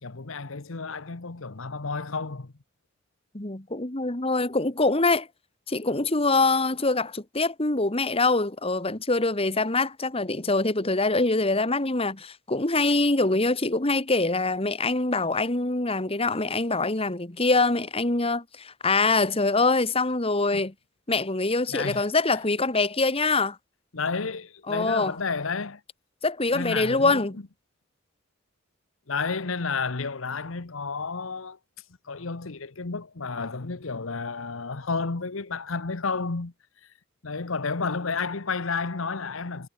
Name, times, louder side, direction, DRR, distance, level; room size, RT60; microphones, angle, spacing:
voice 1, 0.0-2.5 20.5-20.7 21.7-22.0 23.9-25.8 26.5-27.2 29.1-31.6 32.0-36.5 37.2-39.7, left 4 dB, 80° left, 1.1 m, -31 dB
voice 2, 3.3-5.3 5.7-20.7 21.1-23.6 24.7-25.2 26.2-27.4, left 3 dB, 30° left, 1.9 m, -24 dB
head